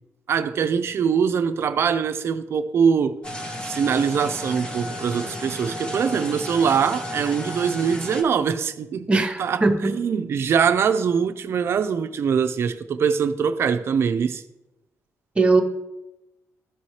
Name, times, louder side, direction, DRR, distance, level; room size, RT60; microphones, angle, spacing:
voice 1, 0.3-3.2 3.6-9.1 9.4-14.4, right 6 dB, 50° right, 0.5 m, -23 dB
sound 1, 3.2-8.2, left 1 dB, 20° left, 0.9 m, -33 dB
voice 2, 9.1-10.0 15.4-15.6, right 3 dB, 20° right, 0.8 m, -19 dB
13.0 x 4.3 x 3.2 m
cardioid pair, 125°, 5 cm